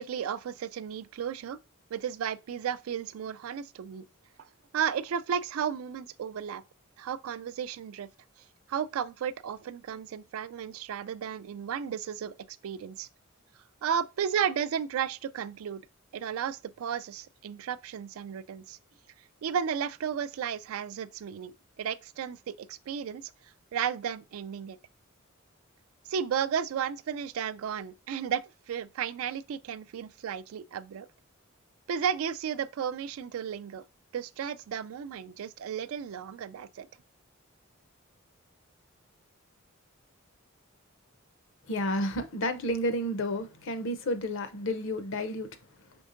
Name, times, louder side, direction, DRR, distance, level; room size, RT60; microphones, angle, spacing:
voice 1, 0.0-1.6 1.9-4.1 4.7-6.6 7.0-8.1 8.7-13.1 13.8-15.8 16.1-18.8 19.4-21.5 21.8-23.3 23.7-24.8 26.1-28.4 28.7-31.1 31.9-33.8 34.1-36.9, right 8 dB, 80° right, 0.3 m, -33 dB
voice 2, 41.7-45.5, left 1 dB, 60° left, 0.6 m, -31 dB
5.3 x 3.5 x 2.5 m
head